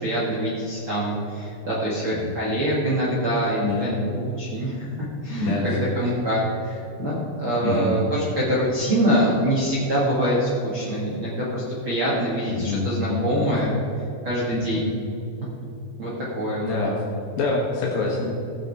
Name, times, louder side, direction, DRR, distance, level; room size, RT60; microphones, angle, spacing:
voice 1, 0.0-13.8 14.2-15.0 16.0-16.8, right 1 dB, 50° right, -7 dB, 1.5 m, -25 dB
voice 2, 3.6-4.0 5.4-5.7 7.6-7.9 12.5-13.9 14.5-15.0 16.6-17.0 17.4-18.3, left 3 dB, 65° left, -2 dB, 2.5 m, -27 dB
17.0 x 6.6 x 4.7 m, 2.9 s
omnidirectional pair, 5.4 m